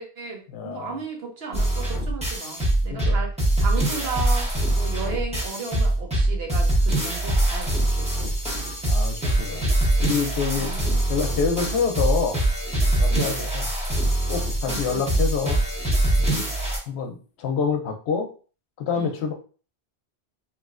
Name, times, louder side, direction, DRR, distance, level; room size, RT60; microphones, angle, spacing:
voice 1, 0.0-8.3 10.5-11.0 13.1-13.3 14.7-15.2 16.3-16.5 18.9-19.2, right 5 dB, 75° right, 1 dB, 1.0 m, -35 dB
voice 2, 0.5-1.0 2.9-3.2 8.8-9.7 10.0-10.7 11.1-12.4 12.8-13.7 14.3-15.6 16.2-16.5 16.9-18.3 18.8-19.3, left 6 dB, 85° left, 5 dB, 0.8 m, -27 dB
sound 1, 1.5-16.8, right 1 dB, 5° right, 0.8 m, -23 dB
3.1 x 2.6 x 2.4 m, 0.37 s
omnidirectional pair, 1.1 m